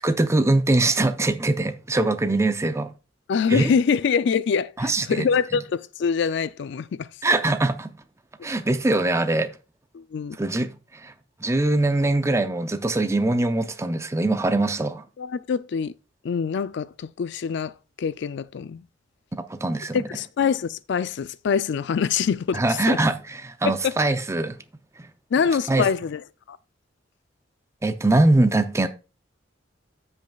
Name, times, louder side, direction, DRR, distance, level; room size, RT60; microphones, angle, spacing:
voice 1, 0.0-2.9 3.5-3.7 4.8-5.3 7.2-7.9 8.4-9.5 10.4-10.7 11.0-11.1 11.4-15.0 19.5-20.0 22.5-24.6 25.0-25.1 25.7-25.8 27.8-28.9, right 2 dB, 15° right, 0.5 m, -22 dB
voice 2, 3.3-7.1 9.9-10.4 15.2-15.9 16.2-18.8 19.9-23.0 23.6-24.0 25.3-26.6, left 6 dB, 65° left, 0.4 m, -25 dB
14.5 x 5.4 x 2.3 m
head